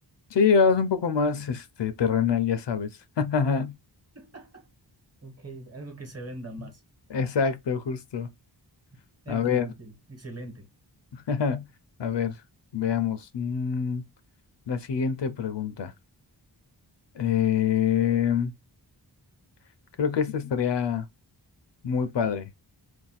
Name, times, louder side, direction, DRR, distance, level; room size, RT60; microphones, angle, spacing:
voice 1, 0.3-2.9 3.2-3.7 7.1-8.3 9.3-9.7 11.1-11.7 12.0-12.4 12.7-14.0 14.7-15.9 17.1-18.5 20.0-21.1 21.8-22.5, left 6 dB, 75° left, 0.6 m, -25 dB
voice 2, 4.1-4.7 5.2-6.8 7.2-7.3 9.2-10.7, right 2 dB, 35° right, 1.2 m, -41 dB
2.7 x 2.2 x 3.9 m
wide cardioid pair, 90°, 43 cm